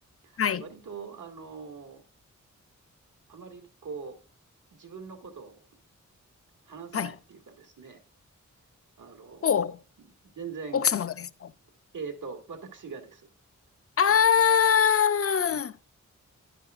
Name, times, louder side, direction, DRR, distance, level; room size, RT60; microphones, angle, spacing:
voice 1, 0.2-2.0 3.3-4.2 4.7-5.6 6.7-8.0 9.0-9.6 10.4-10.9 11.9-13.3 15.5-15.8, right 5 dB, 80° right, 2.0 m, -42 dB
voice 2, 9.4-9.8 10.7-11.5 14.0-15.7, left 7 dB, 50° left, 0.5 m, -23 dB
11.0 x 10.0 x 2.4 m
wide cardioid pair, 125°, 31 cm